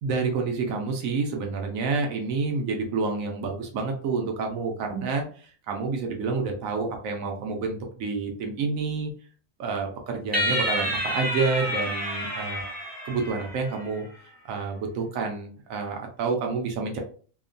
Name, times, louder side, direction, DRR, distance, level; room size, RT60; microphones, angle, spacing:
voice 1, 0.0-9.1 9.6-12.6 13.0-14.1 14.4-17.0, right 4 dB, 80° right, 2 dB, 1.0 m, -29 dB
sound 1, 10.3-13.9, equal, 10° right, 0.6 m, -29 dB
3.0 x 2.1 x 2.5 m, 0.42 s
omnidirectional pair, 1.4 m